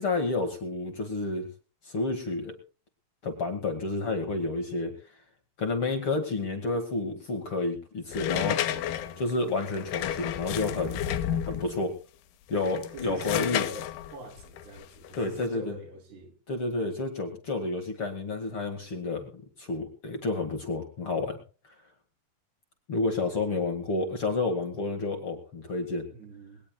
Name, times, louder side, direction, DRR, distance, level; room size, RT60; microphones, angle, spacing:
voice 1, 0.0-1.5 1.8-2.5 3.2-4.9 5.6-8.6 9.2-11.1 11.4-11.9 12.5-13.6 15.1-15.7 16.5-19.3 19.6-21.4 22.9-26.1, left 3 dB, 40° left, 2.2 m, -30 dB
sound 1, 8.1-11.8 12.5-15.5, left 11 dB, 75° left, 2.9 m, -32 dB
voice 2, 8.7-9.2 12.9-16.3 26.1-26.6, right 2 dB, 90° right, 5.1 m, -44 dB
21.5 x 18.5 x 2.3 m
omnidirectional pair, 4.6 m